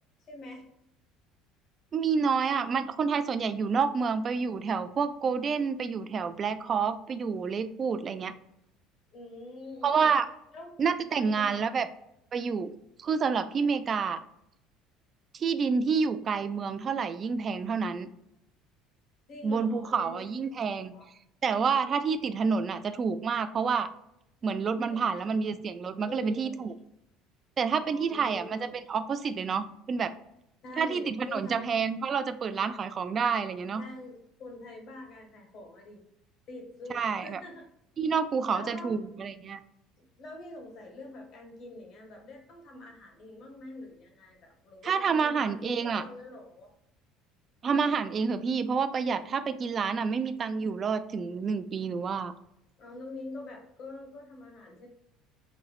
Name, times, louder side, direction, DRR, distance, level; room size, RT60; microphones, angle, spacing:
voice 1, 0.3-0.7 9.1-10.1 10.5-10.8 11.2-11.6 19.3-20.3 20.9-21.1 24.9-25.4 26.0-26.7 27.7-28.8 30.6-31.7 33.7-36.0 36.5-37.7 38.5-39.0 40.0-46.7 52.8-54.9, left 2 dB, 55° left, 2 dB, 1.0 m, -45 dB
voice 2, 1.9-8.3 9.8-10.3 10.8-11.9 12.3-12.7 13.0-14.2 15.3-18.1 19.4-20.9 21.4-23.9 24.4-26.7 27.6-30.1 30.8-33.8 36.9-37.4 38.0-39.6 44.8-46.0 47.6-52.3, right 5 dB, 40° right, 11 dB, 0.3 m, -28 dB
4.2 x 2.0 x 2.3 m, 0.79 s
supercardioid pair, 85°, 0 cm